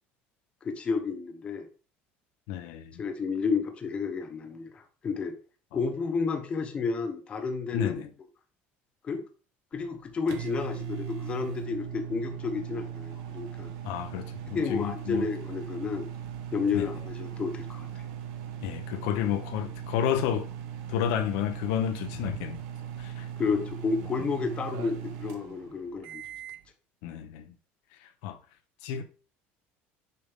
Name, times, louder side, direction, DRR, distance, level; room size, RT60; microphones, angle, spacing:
voice 1, 0.6-1.7 3.0-5.4 5.7-8.0 9.0-9.2 9.7-13.7 14.5-16.1 16.5-17.9 23.4-26.2, left 5 dB, 25° left, 1.0 m, -31 dB
voice 2, 2.5-3.0 7.7-8.1 13.8-15.3 16.7-16.9 18.6-20.5 20.9-22.6 23.0-23.3 27.0-27.5 28.0-28.4 28.8-29.0, left 10 dB, 85° left, 0.7 m, -31 dB
sound 1, 9.7-26.7, right 9 dB, 85° right, 1.0 m, -39 dB
6.8 x 5.1 x 3.6 m
cardioid pair, 165°, 5 cm